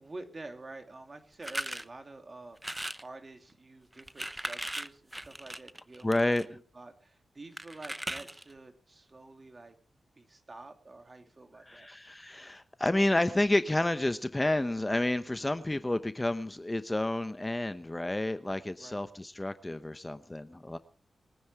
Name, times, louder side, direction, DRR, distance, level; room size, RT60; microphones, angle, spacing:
voice 1, 0.0-9.7 10.2-11.9 18.8-19.1 19.3-19.4, right 2 dB, 35° right, 5 dB, 2.7 m, -48 dB
sound 1, 1.4-1.8 2.6-3.1 3.9-6.4 7.6-8.5, right 1 dB, 10° right, 0.8 m, -38 dB
voice 2, 6.0-6.5 11.7-20.8, left 1 dB, 15° left, 11 dB, 0.8 m, -30 dB
22.5 x 9.5 x 4.8 m, 0.44 s
cardioid pair, 65°, 0 cm